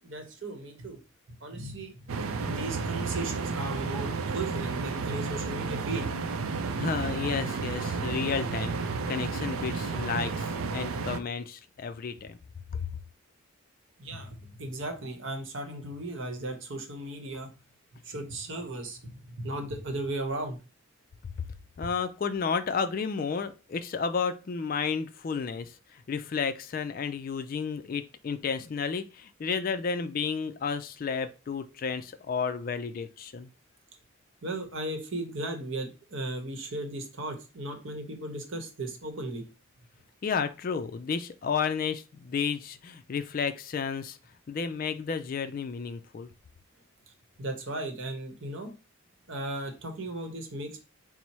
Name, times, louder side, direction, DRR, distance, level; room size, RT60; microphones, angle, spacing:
voice 1, 0.0-1.0 1.4-2.1 2.4-6.1 14.0-17.5 18.0-20.6 34.4-39.4 47.4-48.7 49.3-50.8, right 1 dB, 65° right, 0.9 m, -36 dB
sound 1, 2.1-11.2, right 4 dB, 80° right, 0.4 m, -32 dB
voice 2, 6.8-12.4 21.8-33.5 40.2-44.2 44.5-46.3, left 6 dB, 40° left, 0.3 m, -32 dB
4.1 x 2.0 x 4.5 m
head